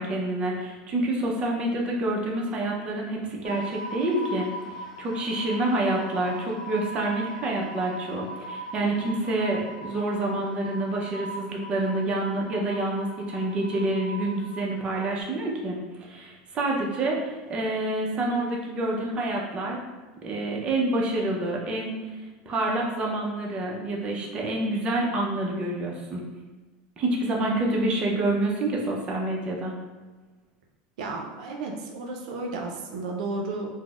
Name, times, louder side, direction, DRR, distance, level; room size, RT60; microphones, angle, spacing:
voice 1, 0.0-4.5 4.8-19.8 20.2-22.0 22.5-26.2 27.0-29.8, right 2 dB, 30° right, -2 dB, 0.5 m, -27 dB
sound 1, 3.4-15.2, right 1 dB, 85° left, 0.6 m, -40 dB
voice 2, 31.0-33.7, right 3 dB, 85° right, 1 dB, 0.4 m, -33 dB
3.8 x 2.0 x 2.3 m, 1.2 s
supercardioid pair, 140°, 4 cm